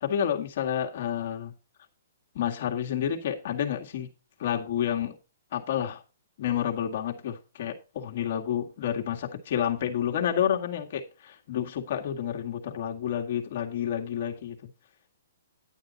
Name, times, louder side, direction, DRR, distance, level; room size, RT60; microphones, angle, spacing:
voice 1, 0.0-1.5 2.4-4.1 4.4-5.2 5.5-6.0 6.4-14.6, left 9 dB, 45° left, 1.9 m, -29 dB
10.5 x 9.3 x 4.1 m
hypercardioid pair, 165°, 0 cm